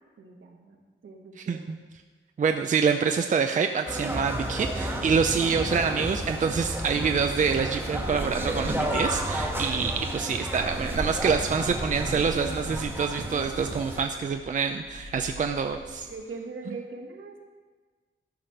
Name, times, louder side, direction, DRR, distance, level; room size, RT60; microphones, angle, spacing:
voice 1, 0.2-1.6 15.4-17.4, right 3 dB, 70° right, 2 dB, 1.4 m, -42 dB
voice 2, 1.4-1.8 2.4-16.1, right 6 dB, 40° right, 6 dB, 0.4 m, -26 dB
sound 1, 3.9-14.0, right 1 dB, 10° right, 1.2 m, -31 dB
sound 2, 6.1-16.1, left 1 dB, 55° left, 2.1 m, -47 dB
13.0 x 5.0 x 5.8 m, 1.4 s
wide cardioid pair, 130°, 21 cm